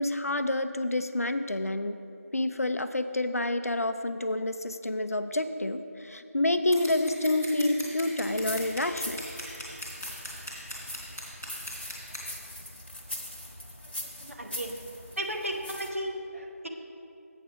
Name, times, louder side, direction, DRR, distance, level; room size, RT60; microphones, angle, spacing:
voice 1, 0.0-2.0 2.3-9.2, left 1 dB, 70° left, 9 dB, 0.5 m, -28 dB
Scissors, 6.7-12.2, left 1 dB, 10° right, 1.0 m, -40 dB
sound 1, 8.2-15.9, left 1 dB, 40° left, 1.0 m, -41 dB
voice 2, 14.2-14.8 15.2-16.7, equal, 55° right, 2 dB, 1.0 m, -34 dB
8.0 x 5.8 x 6.2 m, 2.7 s
figure-of-eight pair, 180°, 8 cm